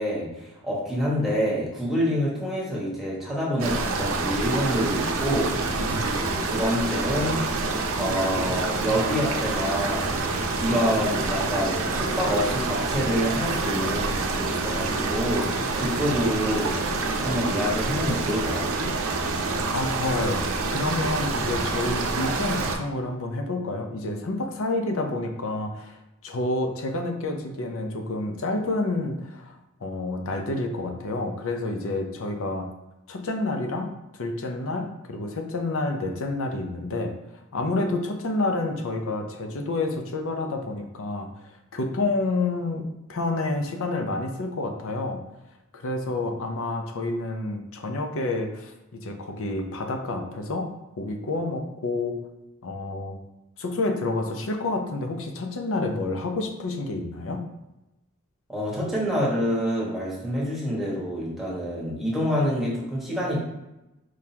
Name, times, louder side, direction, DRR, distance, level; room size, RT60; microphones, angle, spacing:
voice 1, 0.0-7.4 7.9-10.1 10.5-16.8 17.2-18.9 58.5-63.4, equal, ahead, -6 dB, 1.3 m, -27 dB
sound 1, 3.6-22.8, right 3 dB, 65° right, 0.6 m, -27 dB
voice 2, 19.7-20.4 20.7-26.0 26.2-29.5 29.8-32.7 33.1-37.1 37.5-41.3 41.7-45.2 45.7-50.7 51.0-52.2 52.6-53.2 53.6-57.4, left 2 dB, 65° left, 4 dB, 0.7 m, -29 dB
4.7 x 3.9 x 2.9 m, 0.95 s
head